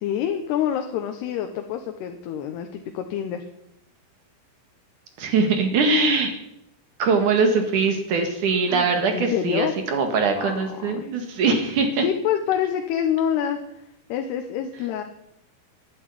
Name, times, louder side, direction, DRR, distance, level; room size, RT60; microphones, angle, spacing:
voice 1, 0.0-3.5 8.7-9.7 10.4-10.5 11.0-11.1 12.0-13.6 14.1-15.0, left 9 dB, 85° left, 5 dB, 3.1 m, -26 dB
voice 2, 5.2-6.3 7.0-12.1, right 4 dB, 60° right, 5 dB, 2.9 m, -22 dB
11.5 x 10.5 x 9.8 m, 0.81 s
omnidirectional pair, 4.6 m